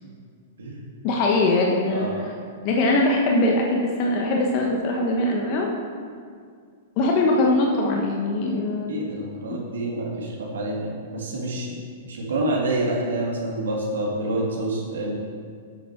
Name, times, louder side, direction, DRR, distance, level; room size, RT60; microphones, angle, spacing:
voice 1, 1.0-2.3 2.6-5.7 7.0-8.9 11.7-11.8, left 2 dB, 45° left, 0 dB, 1.1 m, -22 dB
voice 2, 1.9-2.2 8.9-11.7 12.0-15.1, right 1 dB, 80° right, -3 dB, 2.0 m, -27 dB
8.6 x 6.2 x 4.6 m, 2.1 s
hypercardioid pair, 115°, 0 cm